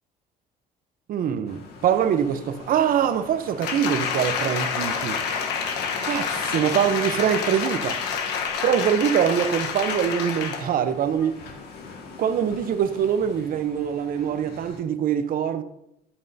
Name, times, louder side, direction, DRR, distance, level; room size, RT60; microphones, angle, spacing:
voice 1, 1.1-5.2 6.0-8.0 8.3-11.4 12.2-15.6, right 8 dB, 55° right, 0.8 m, -24 dB
sound 1, 1.5-14.8, left 4 dB, 75° left, 1.9 m, -43 dB
Applause, 3.6-10.8 11.2-11.3, left 6 dB, 90° left, 1.2 m, -28 dB
12.5 x 10.0 x 2.8 m
cardioid pair, 110°, 17 cm